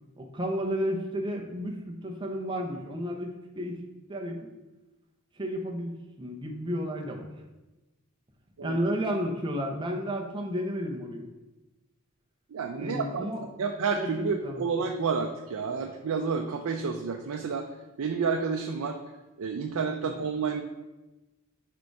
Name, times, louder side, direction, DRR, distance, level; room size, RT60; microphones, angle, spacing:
voice 1, 0.2-3.8 4.1-4.4 5.4-7.3 8.6-11.3 12.8-13.4 14.0-14.6, equal, 20° right, 1 dB, 0.8 m, -32 dB
voice 2, 12.5-13.2 13.6-17.6 18.0-19.0 19.4-20.6, right 5 dB, 85° right, 3 dB, 0.5 m, -30 dB
5.1 x 4.6 x 4.6 m, 1.1 s
head